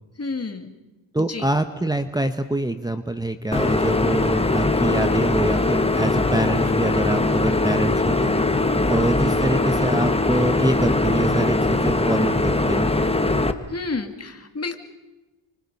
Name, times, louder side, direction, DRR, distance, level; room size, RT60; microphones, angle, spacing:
voice 1, 0.2-0.7 1.3-1.5 13.7-14.8, left 3 dB, 35° left, 7 dB, 2.3 m, -30 dB
voice 2, 1.1-8.6 8.9-13.1, right 1 dB, 10° right, 7 dB, 1.1 m, -25 dB
sound 1, 3.5-13.5, left 2 dB, 15° left, 1.5 m, -21 dB
29.5 x 25.0 x 5.5 m, 1.1 s
cardioid pair, 95°, 45 cm